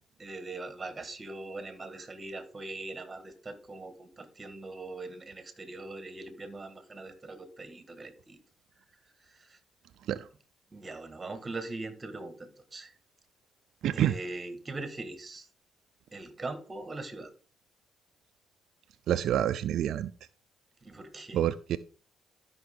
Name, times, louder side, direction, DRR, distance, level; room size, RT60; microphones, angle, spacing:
voice 1, 0.2-8.4 9.2-9.6 10.7-12.9 13.9-15.5 16.1-17.3 20.8-21.5, right 2 dB, 25° right, 10 dB, 1.6 m, -41 dB
voice 2, 13.8-14.2 19.1-20.1 21.3-21.8, right 11 dB, 75° right, 11 dB, 0.4 m, -27 dB
12.5 x 5.7 x 3.6 m, 0.41 s
cardioid pair, 90°, 0 cm